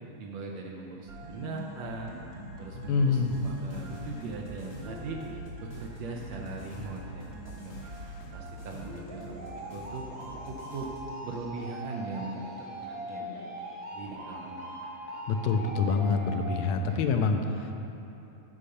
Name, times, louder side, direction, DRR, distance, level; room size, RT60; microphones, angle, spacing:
voice 1, 0.2-2.1 2.6-5.2 5.6-7.9 8.3-10.1 10.4-10.9 11.2-13.7 13.9-14.6 16.9-17.1, right 3 dB, 75° right, -1 dB, 1.8 m, -40 dB
sound 1, 1.1-17.1, right 1 dB, 55° right, 1.4 m, -42 dB
voice 2, 2.9-3.3 15.3-17.7, left 4 dB, 80° left, 5 dB, 1.8 m, -26 dB
sound 2, 3.2-11.1, left 1 dB, 55° left, 0.8 m, -47 dB
8.5 x 5.6 x 6.4 m, 2.9 s
omnidirectional pair, 3.4 m